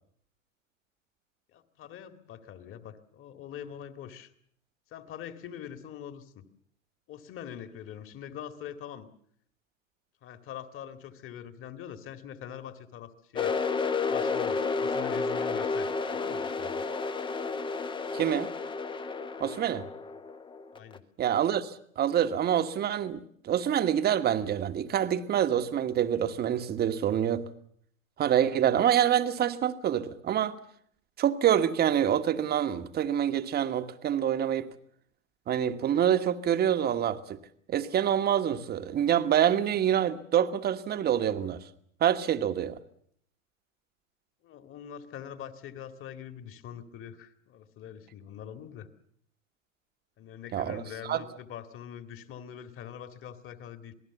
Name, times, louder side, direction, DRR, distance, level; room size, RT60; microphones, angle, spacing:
voice 1, 1.5-4.3 4.9-6.5 7.1-9.1 10.2-13.6 14.1-16.8 20.7-21.0 44.4-48.9 50.2-53.9, left 9 dB, 30° left, 2.2 m, -43 dB
sound 1, 13.4-21.0, left 4 dB, 10° left, 1.0 m, -31 dB
voice 2, 18.1-18.5 19.4-19.8 21.2-27.4 28.2-30.6 31.2-34.7 35.5-37.4 37.7-41.6 42.0-42.8 50.5-50.8 51.1-51.2, right 10 dB, 25° right, 1.4 m, -26 dB
27.0 x 19.0 x 7.1 m
figure-of-eight pair, 100°, 40 cm